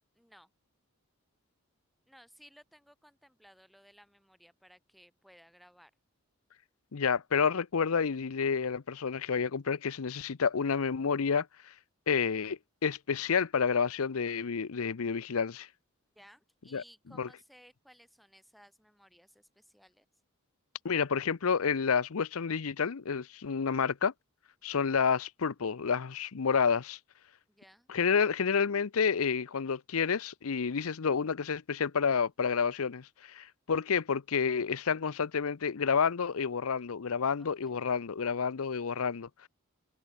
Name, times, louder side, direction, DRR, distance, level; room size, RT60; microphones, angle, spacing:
voice 1, 0.2-0.5 2.1-5.9 16.1-20.1 27.5-27.9 37.4-37.8, equal, ahead, 4.5 m, -59 dB
voice 2, 6.9-11.5 12.1-15.7 16.7-16.8 17.2-17.3 20.8-24.1 24.6-27.0 27.9-39.5, left 6 dB, 80° left, 0.7 m, -29 dB
head